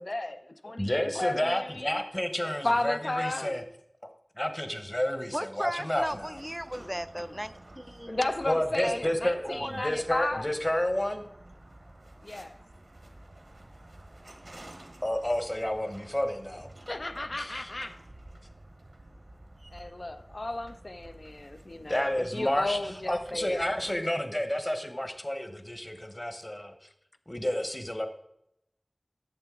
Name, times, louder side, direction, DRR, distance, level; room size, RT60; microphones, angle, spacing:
voice 1, 0.0-2.0 2.6-3.6 6.8-7.3 8.1-10.5 12.2-12.6 16.9-17.9 19.7-23.7, left 2 dB, 70° left, 0.5 m, -33 dB
voice 2, 0.8-3.6 4.0-4.1 4.4-6.4 8.5-11.2 15.0-16.4 17.4-17.7 21.9-22.8 23.1-26.7 27.3-28.1, left 1 dB, 30° left, 1.0 m, -30 dB
voice 3, 5.3-8.3 8.8-9.2 9.4-9.9, equal, 10° right, 0.4 m, -36 dB
sound 1, 5.9-23.9, right 1 dB, 75° right, 1.1 m, -51 dB
8.8 x 7.0 x 3.7 m
wide cardioid pair, 40°, 0 cm